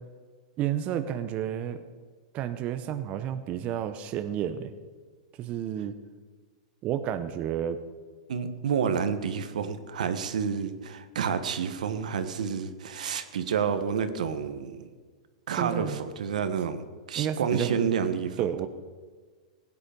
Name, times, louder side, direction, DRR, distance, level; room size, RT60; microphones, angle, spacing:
voice 1, 0.6-1.8 2.3-4.7 5.4-6.0 6.8-7.8 15.6-16.0 17.2-17.8 18.4-18.7, right 10 dB, 30° right, 9 dB, 0.8 m, -31 dB
voice 2, 8.3-14.9 15.5-18.4, right 7 dB, 80° right, 10 dB, 1.3 m, -29 dB
17.0 x 9.7 x 5.2 m, 1.5 s
hypercardioid pair, 140°, 4 cm